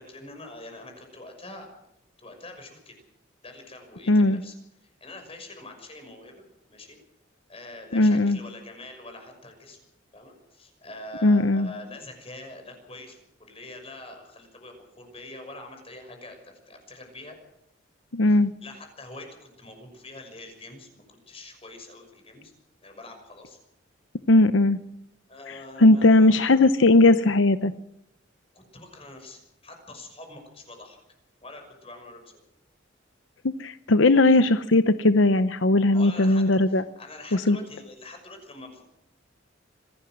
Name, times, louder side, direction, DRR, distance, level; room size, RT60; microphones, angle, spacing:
voice 1, 0.0-1.7 2.2-3.0 3.4-4.5 4.8-6.4 6.7-7.0 7.5-9.8 10.1-17.4 18.3-22.5 22.8-23.6 25.3-26.6 28.5-31.0 31.4-32.4 35.9-38.8, left 2 dB, 30° left, 5 dB, 6.2 m, -44 dB
voice 2, 4.1-4.4 7.9-8.4 11.2-11.7 18.1-18.5 24.3-24.8 25.5-27.7 33.6-36.8 37.3-37.6, left 2 dB, 80° left, 12 dB, 0.8 m, -18 dB
25.5 x 17.5 x 6.3 m, 0.80 s
head